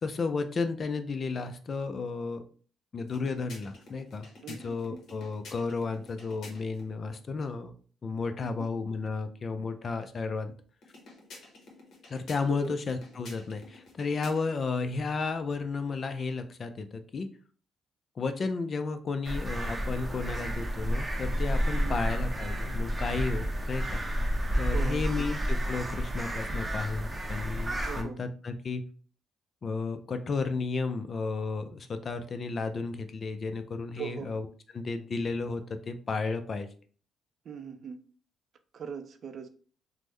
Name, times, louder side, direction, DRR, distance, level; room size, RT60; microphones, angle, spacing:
voice 1, 0.0-2.4 2.9-7.7 8.0-10.5 12.1-17.3 18.2-28.9 29.6-34.5 34.7-36.7, left 4 dB, 45° left, 0.4 m, -33 dB
sound 1, 3.0-6.9 10.8-14.7, left 3 dB, 65° left, 1.0 m, -51 dB
voice 2, 4.4-5.0 8.4-8.7 12.5-12.7 21.7-22.0 24.7-25.2 27.9-28.2 34.0-34.4 37.4-38.0 38.7-39.5, right 7 dB, 60° right, 0.4 m, -40 dB
sound 2, 19.2-28.0, equal, 20° right, 0.6 m, -30 dB
3.5 x 2.0 x 3.1 m
cardioid pair, 90°, 0 cm